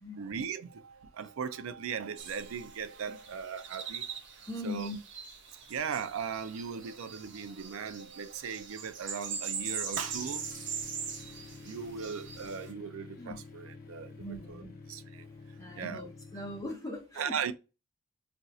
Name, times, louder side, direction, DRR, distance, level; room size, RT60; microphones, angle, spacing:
voice 1, 0.2-4.2 4.6-4.9 5.7-10.4 11.6-14.6 14.9-15.3 15.8-16.0 17.2-17.5, right 6 dB, 90° right, 0.4 m, -38 dB
sound 1, 2.2-12.7, right 6 dB, 60° right, 0.7 m, -41 dB
voice 2, 4.5-5.0 13.2-13.4 14.2-14.7 15.6-17.3, left 1 dB, 15° left, 0.9 m, -40 dB
sound 2, 9.9-16.6, left 3 dB, 45° left, 0.5 m, -49 dB
2.5 x 2.4 x 4.1 m
head